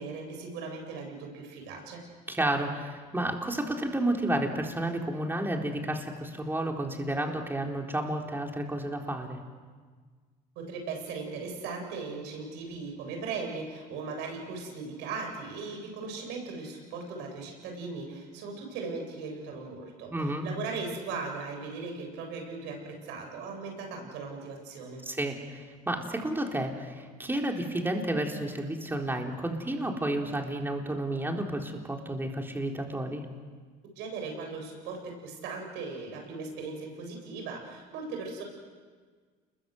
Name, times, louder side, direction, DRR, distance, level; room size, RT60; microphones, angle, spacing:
voice 1, 0.0-2.0 10.6-25.0 34.0-38.4, right 4 dB, 80° right, 3 dB, 7.7 m, -38 dB
voice 2, 2.3-9.4 20.1-20.4 25.1-33.2, right 1 dB, 10° right, 2 dB, 4.1 m, -31 dB
29.0 x 22.0 x 8.1 m, 1.5 s
supercardioid pair, 100°, 18 cm